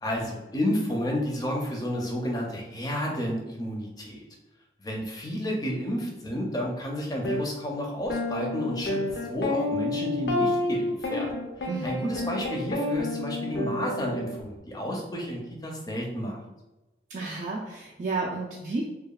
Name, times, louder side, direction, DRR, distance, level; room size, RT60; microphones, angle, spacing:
voice 1, 0.0-4.2 4.8-16.4, equal, 20° left, -1 dB, 0.4 m, -31 dB
sound 1, 7.2-7.4 8.1-14.4, left 2 dB, 75° left, 0.5 m, -29 dB
voice 2, 11.7-12.1 17.1-18.8, right 3 dB, 45° right, -4 dB, 0.3 m, -32 dB
2.8 x 2.2 x 2.3 m, 1.0 s
head